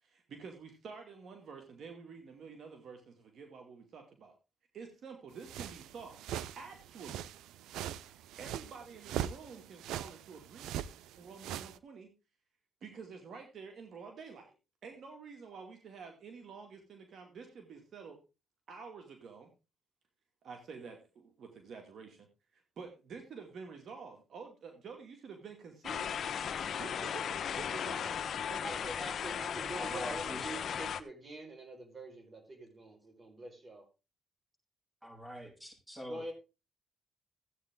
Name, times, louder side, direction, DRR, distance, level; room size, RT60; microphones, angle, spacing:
voice 1, 0.0-4.3 4.7-7.3 7.9-12.1 12.8-14.5 14.8-18.2 18.7-19.5 20.4-22.3 22.5-26.2 26.8-28.8, right 5 dB, 60° right, 4 dB, 2.4 m, -49 dB
sound 1, 5.4-11.8, right 11 dB, 90° right, 0.5 m, -41 dB
sound 2, 25.8-31.0, left 8 dB, 60° left, 1.1 m, -36 dB
voice 2, 28.6-33.8 36.1-36.3, right 1 dB, 35° right, 2 dB, 4.9 m, -45 dB
voice 3, 29.7-30.7 35.0-36.3, equal, 10° right, 1 dB, 7.4 m, -45 dB
15.0 x 8.9 x 3.8 m, 0.30 s
cardioid pair, 90°, 0 cm